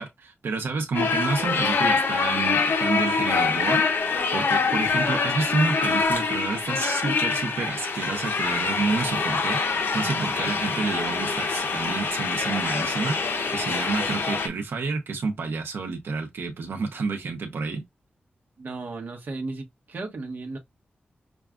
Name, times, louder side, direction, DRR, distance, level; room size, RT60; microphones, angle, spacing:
voice 1, 0.0-3.8 4.3-17.8, right 4 dB, 85° right, 0.7 m, -29 dB
sound 1, 0.9-14.5, left 4 dB, 80° left, 0.8 m, -25 dB
voice 2, 18.6-20.6, right 3 dB, 55° right, 0.9 m, -35 dB
6.0 x 2.3 x 2.4 m
wide cardioid pair, 155°, 4 cm